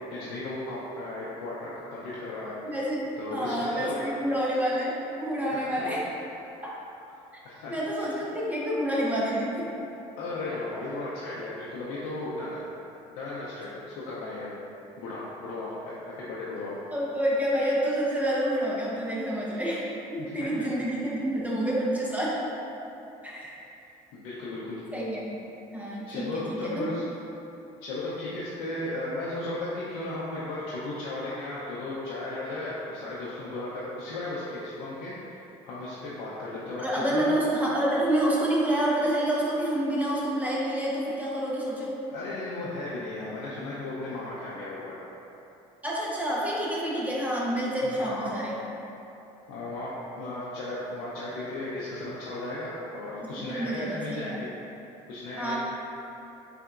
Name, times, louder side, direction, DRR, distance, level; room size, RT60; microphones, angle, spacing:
voice 1, 0.1-2.6 3.2-4.1 5.5-5.9 7.4-8.1 10.2-12.6 13.1-14.5 15.0-16.7 20.2-20.3 24.1-24.8 26.1-27.1 27.8-37.3 42.1-45.0 47.8-48.4 49.5-54.5 55.1-55.6, left 2 dB, 90° left, -8 dB, 0.5 m, -35 dB
voice 2, 2.6-6.1 7.7-9.7 16.9-22.4 23.2-23.6 24.9-25.3 25.7-26.9 36.8-42.0 45.8-48.6 53.2-54.4 55.4-55.6, right 1 dB, 10° right, -6 dB, 0.7 m, -28 dB
3.7 x 3.3 x 2.4 m, 3.0 s
supercardioid pair, 95°, 15 cm